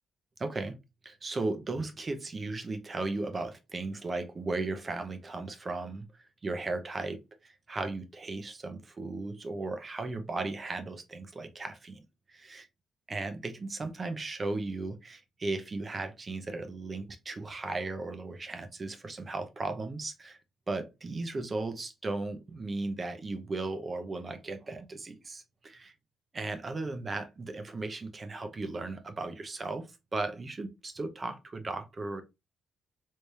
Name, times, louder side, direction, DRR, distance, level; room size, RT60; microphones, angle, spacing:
voice 1, 0.4-0.8 1.0-12.0 12.3-12.7 13.1-20.4 20.7-25.9 26.3-32.2, right 3 dB, 30° right, 0.7 m, -36 dB
3.3 x 3.3 x 2.7 m
cardioid pair, 90°, 0 cm